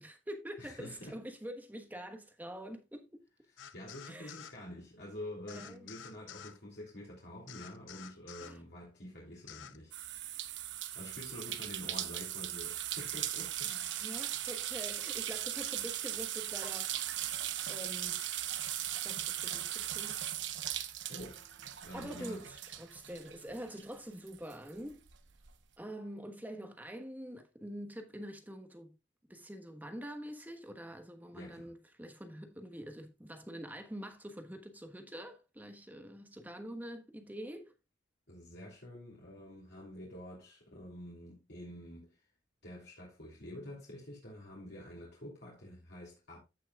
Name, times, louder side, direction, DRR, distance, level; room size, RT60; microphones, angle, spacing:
voice 1, 0.0-3.2 4.1-4.4 5.5-5.9 8.4-8.6 11.5-11.6 13.6-16.9 17.7-18.2 19.0-20.2 21.9-25.0 25.8-28.9 29.3-37.7, equal, 10° right, 1.2 m, -45 dB
voice 2, 0.6-1.1 3.7-9.9 10.9-13.7 21.1-21.4 21.8-22.4 31.3-31.7 38.3-42.2 42.6-46.4, left 1 dB, 60° left, 3.0 m, -47 dB
sound 1, 3.6-4.6 5.5-6.6 7.5-8.6 9.5-9.8, left 9 dB, 80° left, 0.7 m, -50 dB
sound 2, 9.9-23.9 24.3-25.5, right 12 dB, 70° right, 0.8 m, -38 dB
15.0 x 5.7 x 2.4 m
head